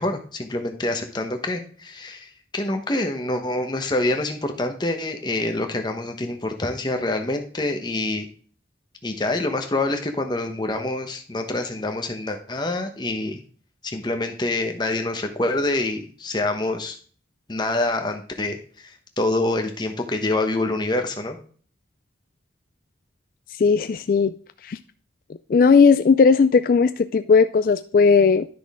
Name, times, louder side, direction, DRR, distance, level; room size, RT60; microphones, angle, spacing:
voice 1, 0.0-8.3 9.0-13.4 13.8-17.0 17.5-21.4, left 2 dB, 25° left, 5 dB, 1.0 m, -26 dB
voice 2, 23.6-24.3 24.7-24.8 25.5-28.5, left 5 dB, 50° left, 11 dB, 0.3 m, -16 dB
10.5 x 6.0 x 3.6 m, 0.44 s
head